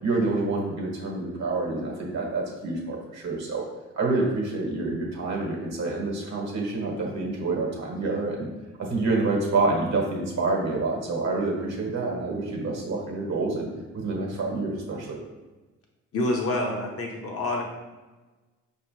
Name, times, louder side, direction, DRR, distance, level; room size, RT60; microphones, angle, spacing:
voice 1, 0.0-3.6 3.9-8.5 8.8-13.7 13.9-15.2, right 3 dB, 60° right, -1 dB, 1.4 m, -27 dB
voice 2, 16.1-17.6, left 1 dB, 50° left, 0 dB, 1.0 m, -27 dB
5.0 x 3.2 x 3.2 m, 1.2 s
cardioid pair, 90°, 30 cm